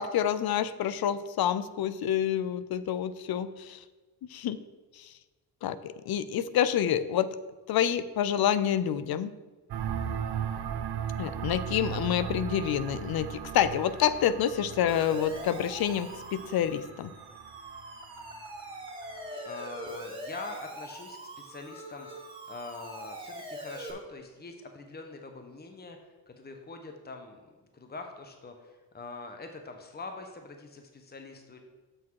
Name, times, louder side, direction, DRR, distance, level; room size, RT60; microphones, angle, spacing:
voice 1, 0.0-3.8 4.3-4.6 5.0-5.1 5.6-7.3 7.7-9.3 11.2-17.1, left 9 dB, 55° left, 15 dB, 0.6 m, -28 dB
sound 1, 9.7-19.2, right 8 dB, 60° right, 1.0 m, -37 dB
voice 2, 11.6-12.1 19.4-31.6, left 3 dB, 20° left, 4 dB, 1.1 m, -44 dB
Siren, 14.9-23.9, right 1 dB, 10° right, 2.5 m, -43 dB
7.0 x 6.2 x 4.7 m, 1.2 s
supercardioid pair, 60°, 44 cm